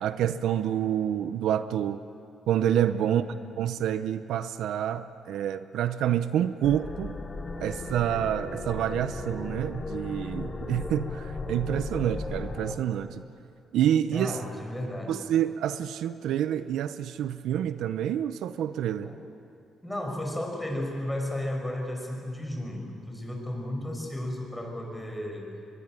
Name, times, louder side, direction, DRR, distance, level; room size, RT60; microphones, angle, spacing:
voice 1, 0.0-2.0 2.5-3.2 3.6-7.1 7.6-13.2 13.7-14.4 15.1-19.1, right 10 dB, 80° right, 12 dB, 0.7 m, -28 dB
voice 2, 2.9-3.4 14.1-15.2 19.0-19.2 19.8-25.5, left 1 dB, 5° left, 1 dB, 6.4 m, -34 dB
sound 1, 6.6-12.7, left 3 dB, 35° left, 2.5 m, -36 dB
23.0 x 21.5 x 9.2 m, 2.6 s
cardioid pair, 90°, 0 cm